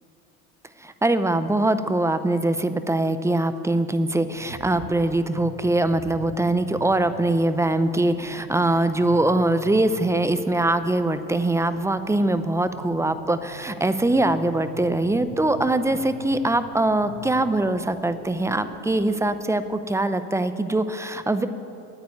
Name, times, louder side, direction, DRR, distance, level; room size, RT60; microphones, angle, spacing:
voice 1, 0.8-21.5, right 2 dB, 5° right, 11 dB, 0.6 m, -22 dB
sound 1, 4.3-19.4, right 2 dB, 75° right, 3.0 m, -44 dB
9.4 x 9.0 x 9.2 m, 2.8 s
hypercardioid pair, 85°, 42 cm